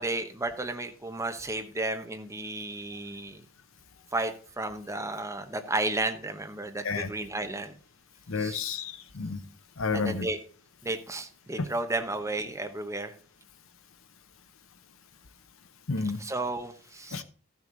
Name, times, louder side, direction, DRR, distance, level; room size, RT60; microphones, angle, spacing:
voice 1, 0.0-3.4 4.1-7.8 8.4-8.7 9.9-10.4 10.8-13.1 16.2-17.2, right 2 dB, 15° right, 6 dB, 0.9 m, -33 dB
voice 2, 8.3-9.4 9.8-10.3 11.6-11.7 15.9-16.2 17.1-17.2, left 4 dB, 75° left, 11 dB, 0.8 m, -30 dB
14.0 x 6.5 x 3.9 m, 0.40 s
head